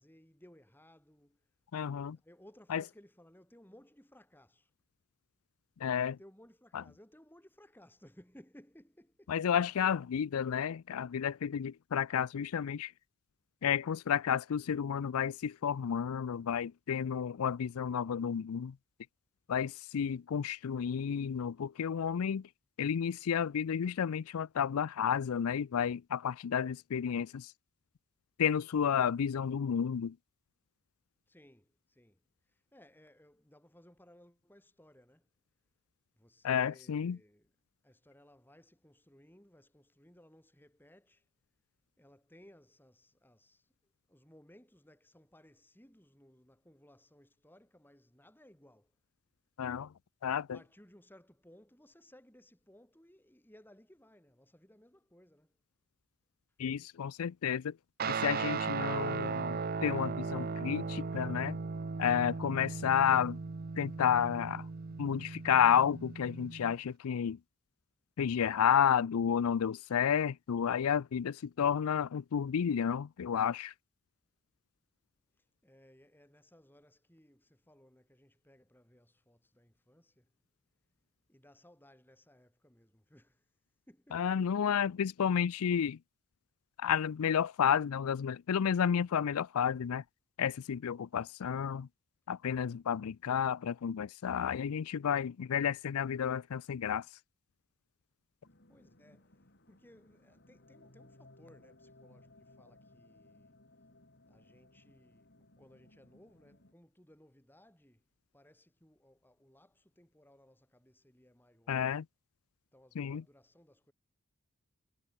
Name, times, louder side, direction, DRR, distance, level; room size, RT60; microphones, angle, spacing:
voice 1, 0.0-1.5 2.2-4.7 6.2-9.3 31.3-35.3 36.1-37.5 37.8-41.3 42.0-48.9 50.5-55.5 75.4-80.3 81.3-83.5 83.9-84.6 98.7-99.4 99.7-103.6 104.3-108.0 108.3-111.9 112.7-113.9, equal, 10° left, 4.8 m, -61 dB
voice 2, 1.7-2.2 2.7-2.8 5.8-6.2 6.7-6.8 9.3-12.9 13.6-18.8 19.5-22.5 22.8-27.5 28.4-30.2 36.4-37.2 49.6-49.9 50.2-50.6 56.6-57.8 58.1-61.6 62.0-63.4 63.8-64.7 65.0-67.4 68.2-73.7 84.1-86.0 86.8-90.0 90.4-91.9 92.3-97.1 111.7-112.0 113.0-113.2, left 8 dB, 75° left, 0.4 m, -31 dB
Guitar, 58.0-66.8, right 5 dB, 40° right, 0.6 m, -37 dB
sound 1, 98.4-106.7, left 2 dB, 50° left, 3.0 m, -61 dB
head